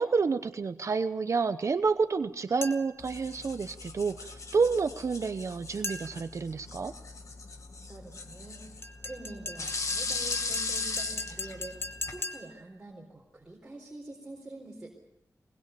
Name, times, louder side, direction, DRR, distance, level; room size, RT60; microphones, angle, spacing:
voice 1, 0.0-6.9, right 4 dB, 55° right, 10 dB, 0.8 m, -29 dB
sound 1, 2.6-3.1 5.8-6.3 8.8-12.7, left 3 dB, 40° left, 1.7 m, -39 dB
sound 2, 3.0-12.2, left 3 dB, 55° left, 1.7 m, -38 dB
voice 2, 7.8-14.9, right 2 dB, 15° right, -2 dB, 4.2 m, -46 dB
22.5 x 20.5 x 6.9 m, 0.81 s
wide cardioid pair, 130°, 6 cm